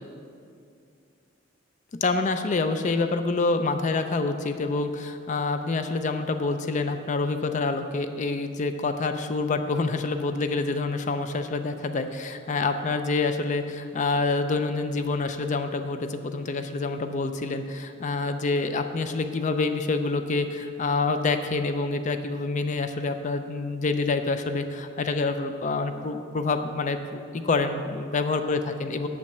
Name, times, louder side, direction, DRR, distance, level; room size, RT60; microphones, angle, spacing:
voice 1, 2.0-29.1, left 3 dB, 35° left, 8 dB, 0.4 m, -27 dB
8.4 x 7.2 x 6.6 m, 2.4 s
head